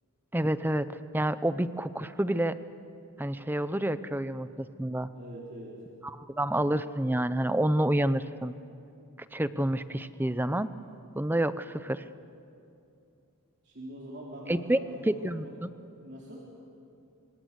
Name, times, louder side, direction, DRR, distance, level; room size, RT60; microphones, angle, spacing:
voice 1, 0.3-0.9 1.1-2.5 3.2-5.1 6.0-8.5 9.3-10.7 11.1-12.0 14.5-14.8 15.1-15.7, right 1 dB, 10° right, 13 dB, 0.6 m, -28 dB
voice 2, 5.1-5.8 13.6-15.7 16.0-16.4, equal, 50° right, -4 dB, 3.6 m, -44 dB
26.0 x 25.5 x 8.2 m, 2.6 s
head